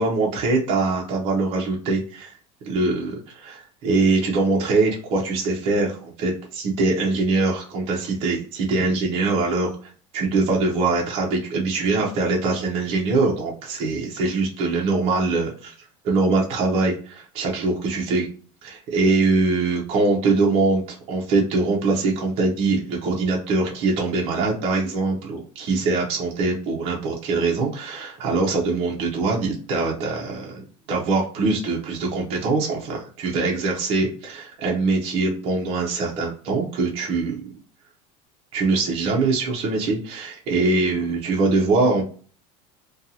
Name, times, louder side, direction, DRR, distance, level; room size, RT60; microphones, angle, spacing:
voice 1, 0.0-2.3 2.6-15.7 16.0-18.3 18.6-30.6 30.9-37.4 38.5-42.0, right 3 dB, 35° right, -2 dB, 0.6 m, -23 dB
2.5 x 2.3 x 2.7 m, 0.41 s
cardioid pair, 165°, 17 cm